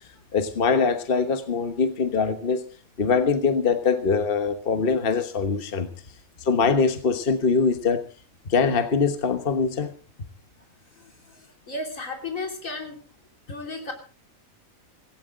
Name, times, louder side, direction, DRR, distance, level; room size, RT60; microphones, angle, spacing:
voice 1, 0.3-2.6 3.0-5.9 6.4-8.0 8.5-9.9, left 5 dB, 45° left, 8 dB, 1.4 m, -23 dB
voice 2, 11.0-13.0 13.5-13.9, left 2 dB, 65° left, 3 dB, 3.7 m, -34 dB
18.0 x 17.0 x 3.8 m, 0.38 s
omnidirectional pair, 1.5 m